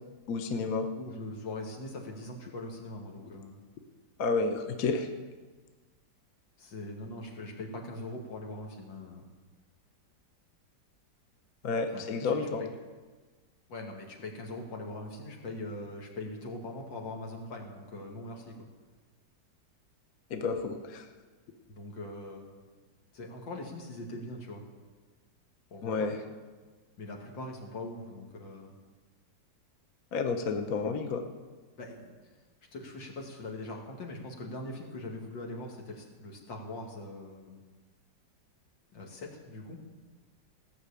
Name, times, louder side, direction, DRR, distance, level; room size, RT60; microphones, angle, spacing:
voice 1, 0.3-0.9 4.2-5.1 11.6-12.6 20.3-21.1 25.8-26.2 30.1-31.2, left 4 dB, 55° left, 6 dB, 1.3 m, -30 dB
voice 2, 0.9-3.6 6.6-9.3 11.9-12.7 13.7-18.6 21.7-22.6 23.1-24.6 25.7-26.1 27.0-28.8 31.8-32.1 32.7-37.6 38.9-39.8, left 2 dB, 80° left, 0 dB, 2.8 m, -41 dB
16.5 x 6.4 x 8.3 m, 1.4 s
omnidirectional pair, 2.0 m